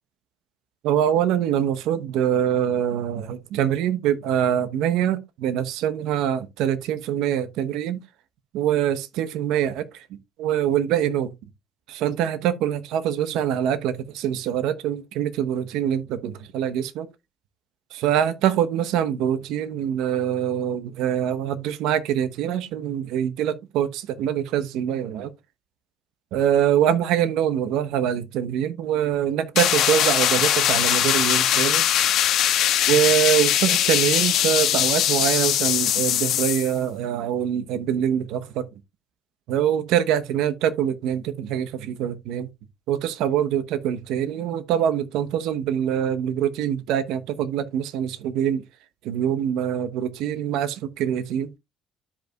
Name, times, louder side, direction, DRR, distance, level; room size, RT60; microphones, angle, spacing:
voice 1, 0.8-8.0 8.5-10.1 10.4-11.3 11.9-17.1 17.9-25.3 26.3-31.8 32.9-38.7 39.5-42.5 42.9-48.6 49.0-51.5, right 10 dB, 75° right, 0.9 m, -24 dB
sound 1, 29.6-36.7, left 11 dB, 70° left, 1.5 m, -21 dB
13.0 x 5.2 x 2.3 m
supercardioid pair, 80°, 0 cm